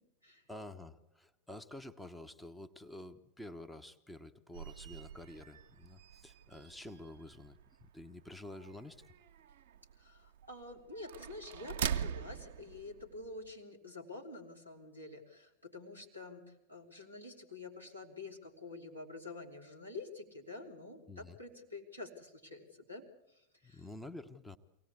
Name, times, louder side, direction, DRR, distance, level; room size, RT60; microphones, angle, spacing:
voice 1, 0.5-9.0 21.1-21.4 23.6-24.6, left 1 dB, ahead, 7 dB, 0.9 m, -49 dB
sound 1, 4.5-13.5, right 8 dB, 55° right, 0.8 m, -43 dB
voice 2, 10.0-16.4 16.7-23.0 23.3-23.8, left 3 dB, 90° left, -2 dB, 3.3 m, -48 dB
24.0 x 18.0 x 8.4 m, 0.88 s
figure-of-eight pair, 90°, 0 cm